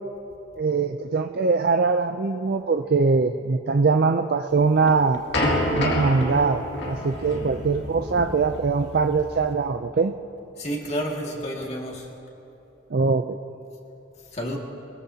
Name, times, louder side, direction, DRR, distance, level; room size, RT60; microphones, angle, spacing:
voice 1, 0.6-5.2 5.7-10.1 12.9-13.4, right 4 dB, 55° right, 6 dB, 0.4 m, -22 dB
sound 1, 4.6-9.5, left 1 dB, 60° left, 2.3 m, -28 dB
voice 2, 10.6-12.1 14.3-14.6, equal, 35° left, -1 dB, 2.0 m, -30 dB
22.5 x 21.5 x 2.8 m, 2.9 s
head